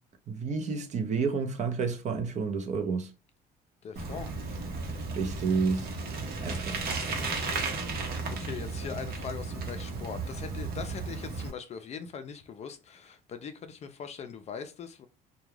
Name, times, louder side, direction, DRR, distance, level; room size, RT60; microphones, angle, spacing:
voice 1, 0.3-3.1 5.1-5.9 6.4-6.9, right 5 dB, 45° right, 0.6 m, -30 dB
voice 2, 3.8-4.3 7.1-15.1, left 6 dB, 40° left, 0.4 m, -41 dB
Bicycle, 4.0-11.5, right 3 dB, 65° right, 0.9 m, -34 dB
2.3 x 2.2 x 3.1 m
cardioid pair, 110°, 17 cm